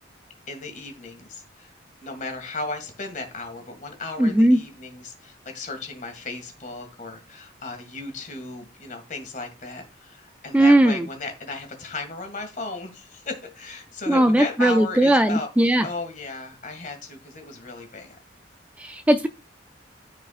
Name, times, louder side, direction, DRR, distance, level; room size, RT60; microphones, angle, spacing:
voice 1, 0.5-1.7 2.0-18.2, left 3 dB, 45° left, 5 dB, 2.0 m, -35 dB
voice 2, 4.2-4.6 10.5-11.0 14.1-15.9 18.8-19.3, right 1 dB, 5° right, 8 dB, 0.3 m, -18 dB
14.0 x 4.8 x 2.4 m, 0.29 s
head